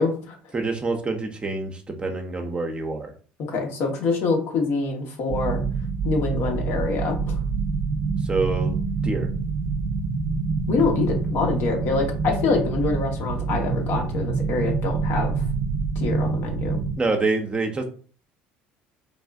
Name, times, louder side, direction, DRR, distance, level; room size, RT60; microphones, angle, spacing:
voice 1, 0.0-0.4 3.4-5.6 6.0-7.3 10.7-15.4 16.0-16.8, left 4 dB, 65° left, 2 dB, 0.9 m, -25 dB
voice 2, 0.5-3.1 8.3-8.7 9.0-9.3 17.0-17.8, right 3 dB, 25° right, 4 dB, 0.6 m, -26 dB
sound 1, 5.3-17.0, right 4 dB, 60° right, 0.5 m, -26 dB
3.4 x 2.4 x 2.3 m, 0.41 s
supercardioid pair, 85°, 4 cm